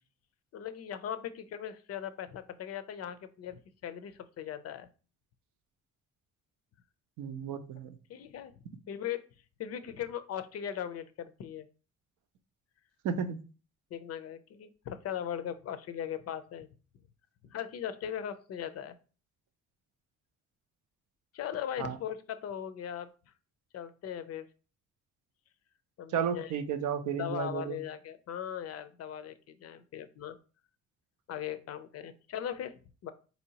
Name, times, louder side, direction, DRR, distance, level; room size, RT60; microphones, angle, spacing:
voice 1, 0.5-4.9 8.1-8.5 8.9-9.2 9.6-11.7 13.9-16.7 17.5-19.0 21.3-23.1 23.7-24.5 26.0-26.5 27.2-30.4 31.3-32.7 33.0-33.1, left 9 dB, 55° left, 12 dB, 0.4 m, -39 dB
voice 2, 7.2-8.0 13.0-13.4 21.8-22.0 26.1-27.8, right 7 dB, 80° right, 9 dB, 0.6 m, -33 dB
4.2 x 2.8 x 2.8 m, 0.36 s
cardioid pair, 90°, 30 cm